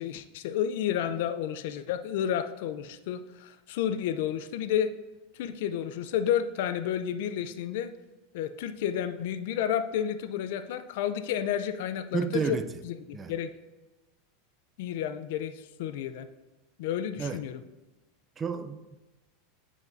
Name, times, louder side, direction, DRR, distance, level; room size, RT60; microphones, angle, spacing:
voice 1, 0.0-4.9 5.4-7.9 8.3-12.6 12.8-13.5 14.8-16.3 16.8-17.6, left 9 dB, 70° left, 10 dB, 0.5 m, -31 dB
voice 2, 12.1-12.7 13.1-13.3 17.2-17.4 18.4-19.0, right 6 dB, 20° right, 10 dB, 0.4 m, -31 dB
9.5 x 4.9 x 2.6 m, 1.1 s
supercardioid pair, 135°, 0 cm